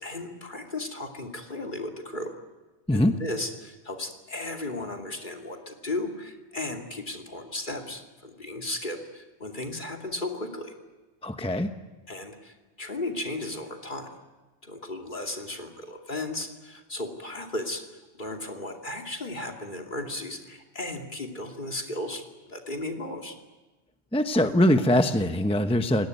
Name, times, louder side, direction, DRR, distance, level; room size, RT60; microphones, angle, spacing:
voice 1, 0.0-2.4 2.9-10.7 12.1-14.1 14.6-23.3, left 2 dB, 50° left, 2 dB, 2.8 m, -35 dB
voice 2, 11.2-11.7 24.1-26.1, left 1 dB, 5° left, 7 dB, 0.9 m, -22 dB
29.0 x 18.0 x 9.4 m, 1.2 s
omnidirectional pair, 1.1 m